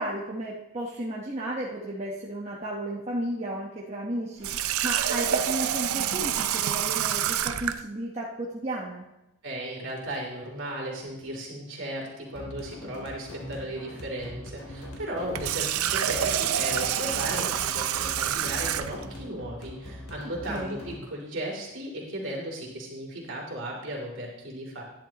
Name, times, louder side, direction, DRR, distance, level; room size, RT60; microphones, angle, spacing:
voice 1, 0.0-9.1 20.5-20.8, right 1 dB, 30° right, -4 dB, 1.0 m, -34 dB
Water tap faucet, 4.4-7.8 15.2-19.1, right 10 dB, 80° right, 0.5 m, -27 dB
voice 2, 9.4-24.8, right 1 dB, 60° right, -2 dB, 3.0 m, -36 dB
sound 1, 12.3-21.0, left 1 dB, 85° left, 2.6 m, -42 dB
11.0 x 10.5 x 2.9 m, 0.90 s
head